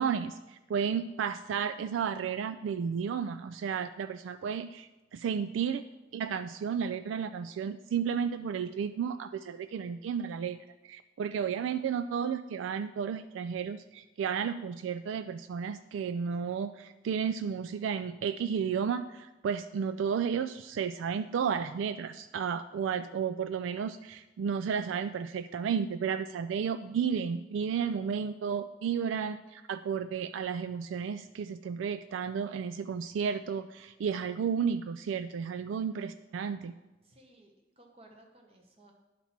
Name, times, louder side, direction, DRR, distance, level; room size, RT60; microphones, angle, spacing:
voice 1, 0.0-5.8 6.1-10.6 10.8-36.7, right 7 dB, 90° right, 11 dB, 0.3 m, -33 dB
voice 2, 37.0-38.9, right 1 dB, 30° right, 1 dB, 1.1 m, -58 dB
10.5 x 4.3 x 5.8 m, 1.1 s
head